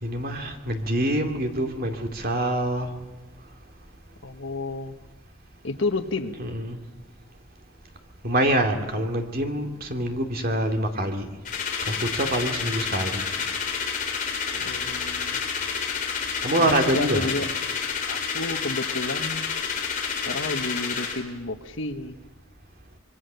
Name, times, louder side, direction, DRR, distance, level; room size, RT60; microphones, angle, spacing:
voice 1, 0.0-2.9 6.4-6.8 8.2-11.3 11.9-13.2 16.4-17.3, right 1 dB, 45° right, 4 dB, 2.5 m, -25 dB
voice 2, 4.2-4.9 5.6-6.3 14.5-15.4 16.6-17.5 18.1-19.5 20.2-22.2, left 2 dB, 65° left, 8 dB, 1.4 m, -31 dB
sound 1, 11.4-21.2, left 6 dB, 40° left, 3.9 m, -29 dB
26.0 x 22.0 x 6.9 m, 1.2 s
head